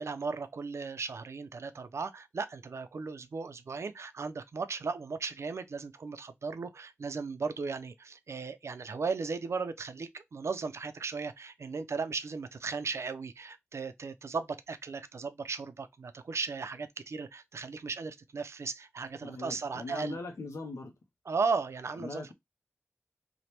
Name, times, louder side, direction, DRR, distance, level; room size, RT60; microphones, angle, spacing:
voice 1, 0.0-20.2 21.3-22.3, right 4 dB, 70° right, 0.4 m, -36 dB
voice 2, 19.2-20.9 22.0-22.3, left 3 dB, 85° left, 0.5 m, -41 dB
3.1 x 2.1 x 2.8 m
wide cardioid pair, 75°, 5 cm